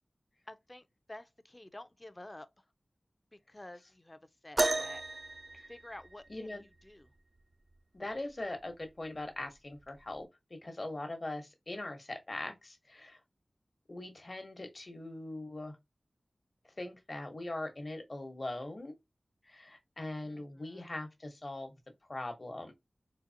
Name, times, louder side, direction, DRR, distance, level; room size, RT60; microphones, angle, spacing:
voice 1, 0.5-2.5 3.3-5.0 5.7-7.1 10.6-10.7 20.2-20.9, left 1 dB, 30° left, 0.5 m, -51 dB
sound 1, 4.6-6.5 8.1-8.2 9.0-9.2 10.2-10.3, right 2 dB, 45° right, 0.3 m, -33 dB
voice 2, 6.3-6.6 7.9-13.2 13.9-15.8 16.8-18.9 19.5-21.7 22.1-22.7, left 2 dB, 50° left, 1.1 m, -41 dB
3.9 x 2.8 x 2.7 m
wide cardioid pair, 60°, 0 cm